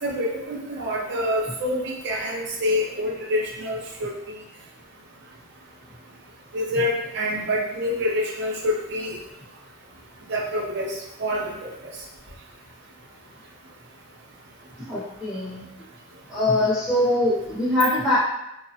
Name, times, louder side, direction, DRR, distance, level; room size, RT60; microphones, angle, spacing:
voice 1, 0.0-4.1 6.5-9.2 10.3-11.5, left 1 dB, 55° right, -2 dB, 0.6 m, -26 dB
voice 2, 14.9-15.6 16.3-18.2, left 1 dB, 5° right, -10 dB, 0.6 m, -22 dB
3.1 x 2.0 x 2.7 m, 0.87 s
head